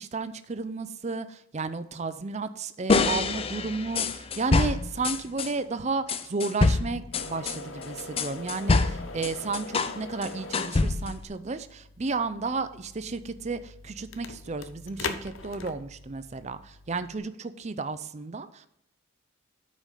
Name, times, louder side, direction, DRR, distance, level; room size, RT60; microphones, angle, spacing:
voice 1, 0.0-18.7, right 4 dB, 35° right, 12 dB, 0.5 m, -33 dB
sound 1, 2.9-5.5 6.1-10.0 10.2-11.2, left 3 dB, 30° left, 0.4 m, -26 dB
sound 2, 7.1-17.2, left 3 dB, 70° left, 0.8 m, -42 dB
8.8 x 5.2 x 5.6 m, 0.77 s
head